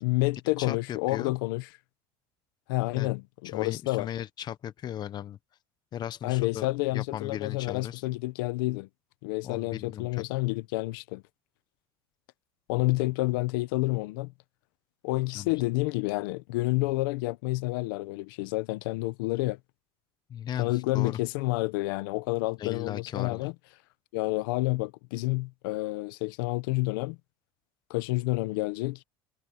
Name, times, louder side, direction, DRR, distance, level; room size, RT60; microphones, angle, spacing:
voice 1, 0.0-1.7 2.7-4.1 6.2-8.9 9.2-11.2 12.7-14.3 15.0-19.6 20.6-23.5 24.1-27.2 27.9-29.0, left 21 dB, 85° left, 1.0 m, -29 dB
voice 2, 0.6-1.3 3.0-3.1 3.4-5.4 5.9-8.0 9.4-10.2 15.3-15.5 20.3-21.2 22.6-23.5, left 10 dB, 40° left, 1.3 m, -37 dB
supercardioid pair, 120°, 11 cm